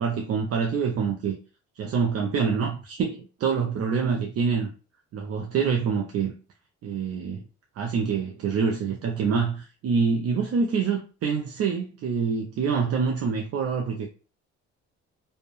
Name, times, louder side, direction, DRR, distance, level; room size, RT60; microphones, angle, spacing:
voice 1, 0.0-1.4 1.8-4.7 5.1-6.3 6.8-7.4 7.8-14.1, right 5 dB, 50° right, 0.5 m, -26 dB
2.6 x 2.1 x 3.0 m
cardioid pair, 90°, 31 cm